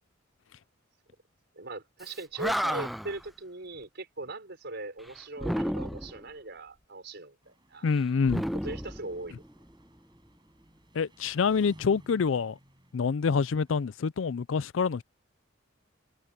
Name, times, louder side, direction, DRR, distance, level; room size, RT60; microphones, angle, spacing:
voice 1, 1.6-7.9 8.6-9.4, right 2 dB, 60° right, 5.4 m, -40 dB
Animal, 2.1-2.2 2.4-3.2 5.4-6.2 8.2-9.6, equal, ahead, 0.4 m, -31 dB
Engine, 7.4-14.0, right 1 dB, 25° right, 8.0 m, -58 dB
voice 2, 7.8-8.4 10.9-12.6 12.9-15.0, left 5 dB, 70° left, 0.4 m, -26 dB
head